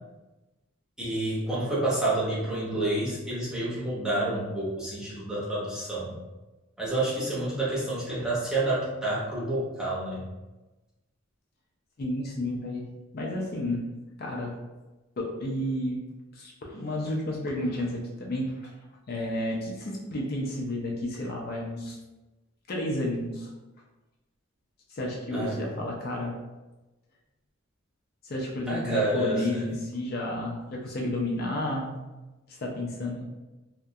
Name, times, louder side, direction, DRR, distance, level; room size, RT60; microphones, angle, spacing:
voice 1, 1.0-6.1 6.8-10.2 25.3-25.6 28.7-29.7, right 2 dB, 5° right, -8 dB, 0.7 m, -29 dB
voice 2, 12.0-12.8 13.1-13.8 14.2-14.5 15.2-16.0 16.3-18.7 19.1-22.0 22.7-23.5 24.9-26.3 28.2-32.0 32.5-33.2, left 1 dB, 50° left, -2 dB, 0.4 m, -31 dB
2.3 x 2.1 x 2.7 m, 1.1 s
head